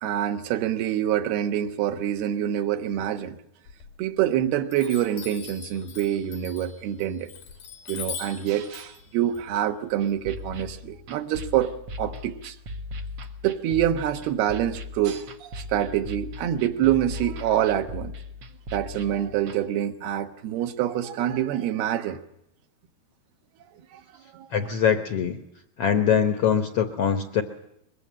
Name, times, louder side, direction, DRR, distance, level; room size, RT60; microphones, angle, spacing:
voice 1, 0.0-3.4 4.0-7.3 7.9-11.7 12.0-12.6 13.4-18.1 18.7-22.2 23.9-24.0 24.3-24.5, right 11 dB, 80° right, 8 dB, 3.2 m, -26 dB
Chime, 3.7-4.3 4.7-10.6, left 7 dB, 70° left, 4.8 m, -41 dB
sound 1, 10.0-19.6, left 2 dB, 50° right, 1.9 m, -38 dB
voice 2, 24.5-25.4 25.8-27.4, left 8 dB, 85° left, 9 dB, 1.3 m, -23 dB
23.0 x 22.0 x 7.5 m, 0.80 s
omnidirectional pair, 4.5 m